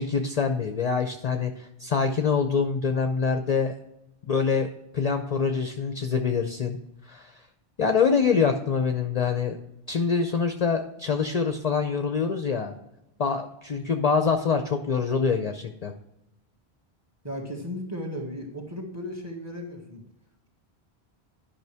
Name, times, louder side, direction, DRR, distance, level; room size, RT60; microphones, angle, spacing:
voice 1, 0.0-3.8 4.3-6.8 7.1-7.4 7.8-9.6 9.9-12.8 13.2-15.9, left 5 dB, 45° left, 6 dB, 0.6 m, -25 dB
voice 2, 17.2-20.0, equal, 15° right, 1 dB, 1.9 m, -35 dB
11.0 x 5.6 x 3.4 m, 0.87 s
omnidirectional pair, 1.1 m